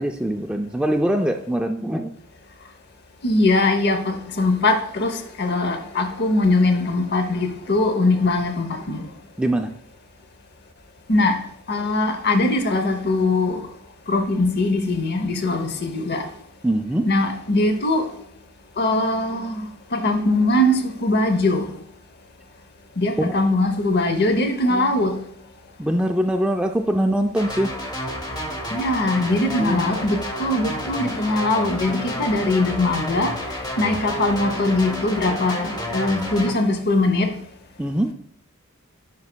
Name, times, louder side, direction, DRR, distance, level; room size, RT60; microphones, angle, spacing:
voice 1, 0.0-2.1 9.4-9.7 16.6-17.1 23.2-23.5 24.2-24.3 24.7-24.9 25.8-27.7 29.6-29.9 37.8-38.1, right 1 dB, 5° right, 0.3 m, -23 dB
voice 2, 3.2-9.0 11.1-11.4 11.7-13.6 14.1-16.3 17.1-18.1 18.8-19.6 19.9-21.7 23.0-25.2 28.7-33.3 33.8-37.3, left 2 dB, 50° left, 0.8 m, -21 dB
sound 1, 27.4-36.5, equal, 20° left, 1.0 m, -30 dB
9.5 x 6.0 x 2.2 m
head